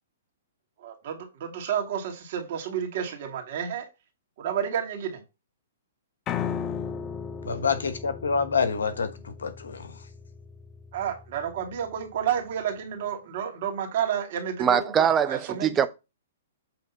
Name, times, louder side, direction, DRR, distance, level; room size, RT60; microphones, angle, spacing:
voice 1, 0.8-3.9 4.4-5.2 10.9-15.7, right 8 dB, 55° right, 2.5 m, -30 dB
Piano, 6.3-12.4, left 7 dB, 25° left, 0.6 m, -37 dB
voice 2, 7.4-10.0, left 5 dB, 80° left, 1.2 m, -27 dB
voice 3, 14.6-15.9, right 8 dB, 20° right, 0.6 m, -22 dB
8.0 x 3.5 x 5.7 m
hypercardioid pair, 130°, 0 cm